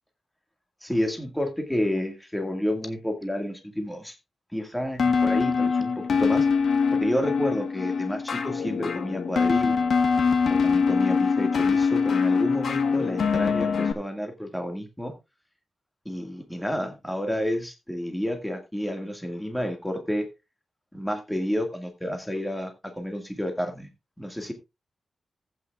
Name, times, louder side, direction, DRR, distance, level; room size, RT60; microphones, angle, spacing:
voice 1, 0.8-4.2 4.5-9.8 10.5-15.1 16.1-20.3 20.9-23.9 24.2-24.5, equal, 5° left, 2.0 m, -30 dB
sound 1, 5.0-13.9, left 5 dB, 75° left, 1.4 m, -23 dB
15.5 x 8.9 x 2.4 m
wide cardioid pair, 110°, 0 cm